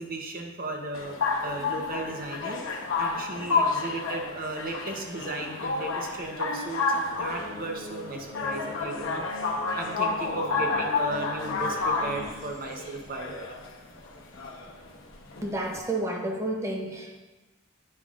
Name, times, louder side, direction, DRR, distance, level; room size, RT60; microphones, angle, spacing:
voice 1, 0.0-2.6 3.0-9.3 9.7-13.5, right 2 dB, 45° right, 2 dB, 0.8 m, -35 dB
sound 1, 0.9-15.8, left 4 dB, 75° left, 0.9 m, -30 dB
sound 2, 7.3-12.3, left 2 dB, 85° right, 2.2 m, -42 dB
voice 2, 15.4-17.2, right 1 dB, 15° right, 1 dB, 0.7 m, -31 dB
9.6 x 5.4 x 2.5 m, 1.2 s
head